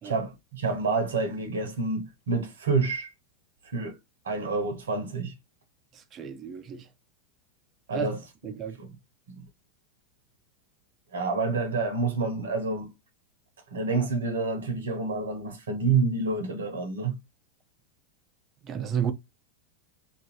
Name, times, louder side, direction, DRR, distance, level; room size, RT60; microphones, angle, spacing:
voice 1, 0.0-3.1 3.6-4.0 4.2-5.3 7.9-8.2 8.8-8.9 9.4-9.5 11.1-12.9 13.7-17.2, right 4 dB, 70° right, 0.9 m, -28 dB
voice 2, 5.9-6.9 7.9-8.1 8.4-8.8 18.6-19.1, right 8 dB, 30° right, 0.6 m, -32 dB
2.7 x 2.6 x 2.8 m
figure-of-eight pair, 90°, 0 cm